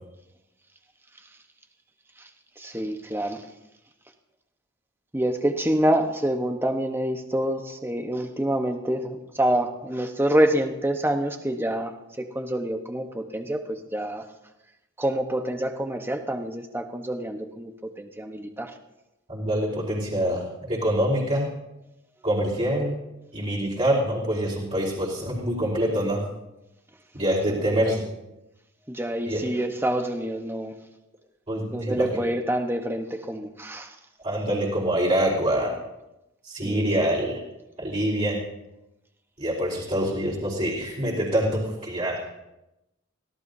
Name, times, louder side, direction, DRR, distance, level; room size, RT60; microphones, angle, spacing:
voice 1, 2.6-3.4 5.1-11.9 12.2-14.2 15.0-17.7 18.0-18.7 27.6-28.0 28.9-30.7 31.7-33.9 36.6-37.1, right 1 dB, 10° right, 5 dB, 1.1 m, -27 dB
voice 2, 19.3-21.5 22.2-23.0 23.3-26.2 27.1-28.0 29.3-29.4 31.5-32.1 34.2-35.7 36.4-37.4 37.8-38.4 39.4-42.2, right 1 dB, 35° right, -7 dB, 4.3 m, -25 dB
24.5 x 17.5 x 2.7 m, 0.94 s
head